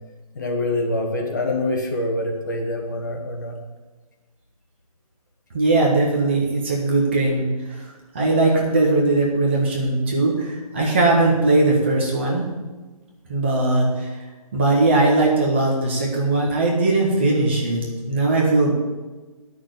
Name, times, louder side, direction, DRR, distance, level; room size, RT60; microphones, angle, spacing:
voice 1, 0.3-3.6, left 2 dB, 30° left, 1 dB, 1.3 m, -25 dB
voice 2, 5.5-7.8 8.1-12.5 13.3-14.2 14.5-18.7, right 2 dB, 20° right, -1 dB, 1.5 m, -19 dB
10.0 x 6.7 x 8.3 m, 1.2 s
hypercardioid pair, 175°, 20 cm